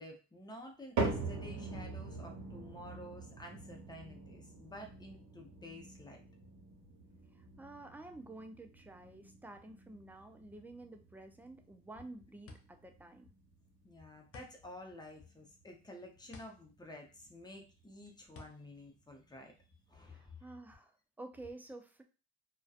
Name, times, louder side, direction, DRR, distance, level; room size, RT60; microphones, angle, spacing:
voice 1, 0.0-6.3 13.8-19.5 19.9-20.5, left 1 dB, 15° left, 2 dB, 0.7 m, -51 dB
sound 1, 1.0-17.3 17.6-18.1 18.7-18.8 19.6-19.7, right 3 dB, 70° right, 1.0 m, -44 dB
voice 2, 7.3-13.3 20.0-22.0, right 2 dB, 5° right, 5 dB, 0.3 m, -51 dB
sound 2, 11.6-20.0, left 3 dB, 50° left, 0.6 m, -58 dB
2.6 x 2.2 x 2.4 m, 0.34 s
cardioid pair, 90°, 30 cm